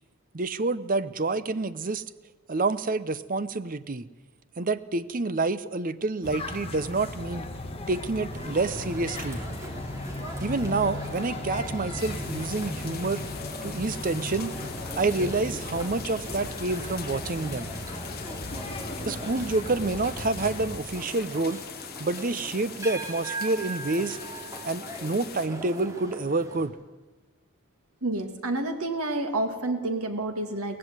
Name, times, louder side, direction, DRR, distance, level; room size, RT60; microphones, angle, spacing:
voice 1, 0.3-2.0 2.5-4.1 4.6-7.5 7.9-9.4 10.4-13.2 13.6-14.5 15.0-17.7 19.0-21.6 22.0-24.2 24.6-26.7, right 3 dB, 40° right, 15 dB, 0.7 m, -28 dB
sound 1, 6.2-20.8, left 2 dB, 25° left, 1.8 m, -37 dB
sound 2, 8.3-26.7, right 1 dB, 15° right, 2.8 m, -41 dB
sound 3, 12.0-25.5, left 9 dB, 45° left, 1.6 m, -43 dB
voice 2, 28.0-30.8, right 2 dB, 80° right, 6 dB, 2.4 m, -29 dB
18.0 x 15.5 x 9.5 m, 1.2 s
head